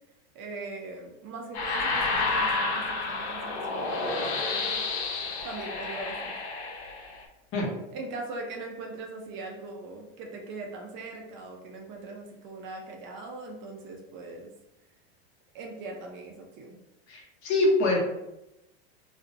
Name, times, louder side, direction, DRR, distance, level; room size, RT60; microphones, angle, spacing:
voice 1, 0.3-4.8 5.4-6.3 7.9-14.5 15.5-16.8, right 3 dB, 40° right, 1 dB, 0.4 m, -41 dB
sound 1, 1.5-7.2, left 3 dB, 85° left, 0.6 m, -30 dB
voice 2, 17.1-18.0, left 2 dB, 40° left, -2 dB, 0.8 m, -24 dB
2.4 x 2.0 x 2.5 m, 0.92 s
supercardioid pair, 120°, 32 cm